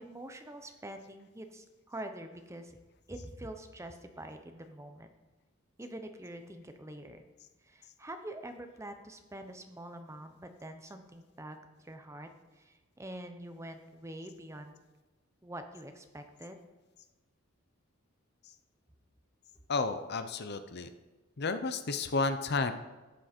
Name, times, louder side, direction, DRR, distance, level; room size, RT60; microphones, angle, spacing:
voice 1, 0.0-2.8 3.1-5.1 5.8-7.2 7.6-14.8 15.4-16.6, right 1 dB, 15° right, 6 dB, 0.8 m, -45 dB
voice 2, 19.7-20.9 21.4-22.7, left 3 dB, 50° left, 10 dB, 0.7 m, -32 dB
12.5 x 9.1 x 4.4 m, 1.2 s
head